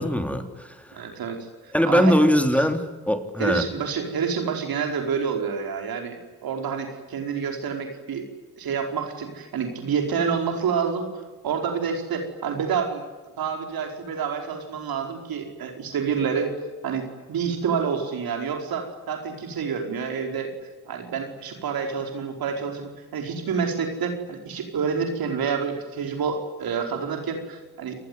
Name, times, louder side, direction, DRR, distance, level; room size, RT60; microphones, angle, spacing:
voice 1, 0.0-0.8 1.7-3.7, equal, 5° left, 6 dB, 3.6 m, -21 dB
voice 2, 0.9-2.2 3.4-8.3 8.6-13.0 13.4-16.5 16.8-20.5 20.8-27.9, right 6 dB, 75° right, 4 dB, 4.9 m, -28 dB
29.5 x 20.0 x 9.6 m, 1.3 s
supercardioid pair, 55°, 36 cm